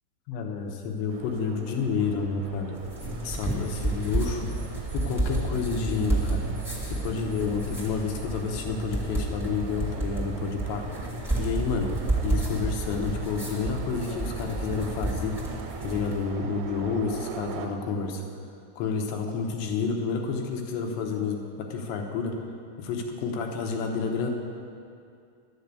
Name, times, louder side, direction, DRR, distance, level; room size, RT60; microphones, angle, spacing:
voice 1, 0.3-2.8 3.2-4.5 4.9-6.5 6.8-10.9 11.4-11.9 12.2-15.4 15.8-18.2 18.8-22.4 22.8-24.3, left 5 dB, 75° left, 2 dB, 2.9 m, -30 dB
sound 1, 1.1-17.7, right 7 dB, 85° right, 3.0 m, -42 dB
sound 2, 2.7-16.2, right 2 dB, ahead, 0.7 m, -31 dB
sound 3, 3.0-8.5, right 2 dB, 65° right, 0.3 m, -44 dB
11.5 x 6.9 x 8.2 m, 2.4 s
omnidirectional pair, 5.5 m